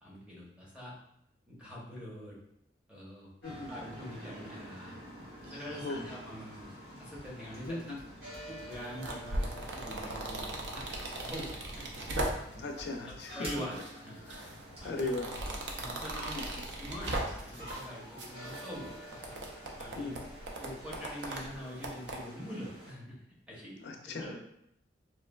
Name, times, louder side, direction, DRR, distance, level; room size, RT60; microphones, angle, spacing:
voice 1, 0.0-1.0 1.5-2.4 2.9-3.3 3.7-5.0 5.5-6.7 7.0-8.0 8.5-10.9 11.2-11.9 12.5-12.6 13.1-14.2 14.8-15.1 15.8-16.4 16.7-19.2 19.8-20.1 20.6-23.2 23.5-24.3, equal, 5° right, -6 dB, 0.8 m, -44 dB
sound 1, 3.4-22.9, equal, 85° right, 1.5 m, -49 dB
sound 2, 6.6-13.8 14.5-14.9 15.4-16.3 16.6-16.8 17.0-17.8, equal, 35° right, 1.2 m, -50 dB
voice 2, 7.7-8.0 12.6-13.5 14.3-14.5 14.8-15.3 16.3-16.5 20.0-20.3 23.8-24.3, left 2 dB, 65° left, 4 dB, 0.4 m, -38 dB
sound 3, 8.7-12.7 13.2-13.9 14.3-17.9 18.2-22.2, right 1 dB, 70° right, 0.5 m, -38 dB
3.1 x 2.4 x 2.3 m, 0.78 s
head